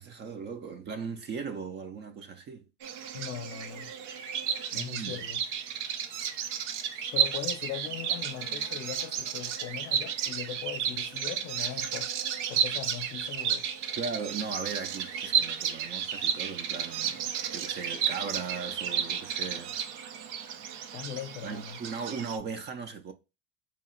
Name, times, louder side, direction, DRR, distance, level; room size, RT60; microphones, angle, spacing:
voice 1, 0.0-2.6 4.7-5.1 14.0-19.8 21.4-23.1, right 5 dB, 30° right, 0.4 m, -38 dB
Bird vocalization bird call bird song, 2.8-22.4, right 8 dB, 90° right, 0.7 m, -32 dB
voice 2, 3.1-3.9 4.7-5.4 7.1-12.1 12.5-13.7 20.9-21.8, left 10 dB, 40° left, 0.6 m, -39 dB
2.9 x 2.3 x 4.2 m
supercardioid pair, 115°, 34 cm